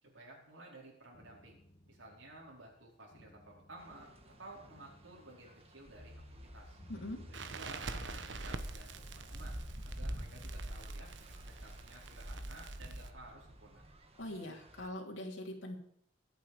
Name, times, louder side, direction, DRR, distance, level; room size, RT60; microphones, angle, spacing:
voice 1, 0.0-4.1 4.4-6.2 6.5-6.8 7.3-9.6 9.8-11.1 11.6-13.8, right 2 dB, 90° right, -3 dB, 4.5 m, -54 dB
sound 1, 1.0-12.3, left 1 dB, 40° left, 2.4 m, -58 dB
sound 2, 3.8-14.9, equal, 30° right, 1.9 m, -47 dB
voice 2, 6.9-7.2 14.2-15.8, left 1 dB, 75° left, -2 dB, 3.2 m, -42 dB
Crackle, 7.3-13.1, right 4 dB, 70° right, 1.1 m, -47 dB
22.5 x 8.1 x 5.0 m, 0.68 s
head